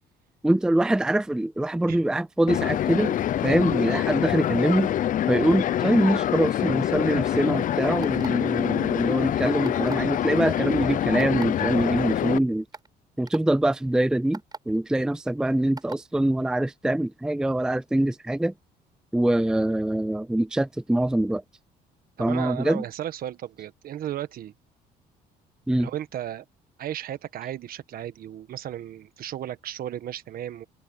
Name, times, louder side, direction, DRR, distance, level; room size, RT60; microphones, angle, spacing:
voice 1, 0.4-3.2 3.4-4.9 5.3-12.6 13.2-14.4 14.7-18.5 19.1-21.4 22.2-22.8 25.7-25.9, right 1 dB, 5° right, 0.5 m, -24 dB
sound 1, 2.5-12.4, left 11 dB, 50° left, 0.7 m, -25 dB
sound 2, 8.0-8.5 9.6-10.1 11.2-11.5 12.2-12.3 12.7-12.9 13.3-13.4 14.3-14.6 15.8-16.0, right 4 dB, 25° right, 6.5 m, -39 dB
voice 2, 22.2-24.5 25.8-26.4 26.8-30.6, right 11 dB, 60° right, 1.5 m, -34 dB
cardioid pair, 110°, 17 cm